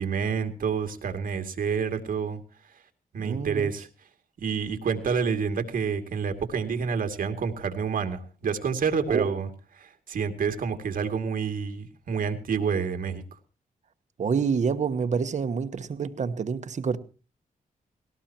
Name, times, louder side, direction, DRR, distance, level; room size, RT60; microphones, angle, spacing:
voice 1, 0.0-2.4 3.1-3.9 4.4-9.5 9.8-13.2, right 6 dB, 75° right, 2.4 m, -28 dB
voice 2, 3.2-3.7 9.1-9.4 14.2-17.0, right 6 dB, 55° right, 1.2 m, -27 dB
19.0 x 18.0 x 2.9 m
wide cardioid pair, 125°, 15 cm